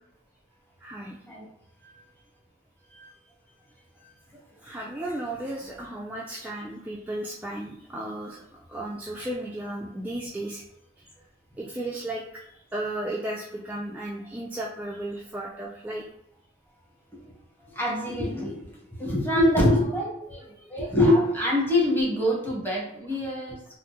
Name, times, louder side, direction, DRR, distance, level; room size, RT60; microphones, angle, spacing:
voice 1, 0.8-1.2 4.6-8.4 8.7-10.6 11.6-12.4 12.7-16.1 20.4-20.5, right 1 dB, 10° right, -3 dB, 0.3 m, -34 dB
voice 2, 17.7-23.6, left 1 dB, 10° left, -4 dB, 1.0 m, -25 dB
3.5 x 2.0 x 2.9 m, 0.80 s
head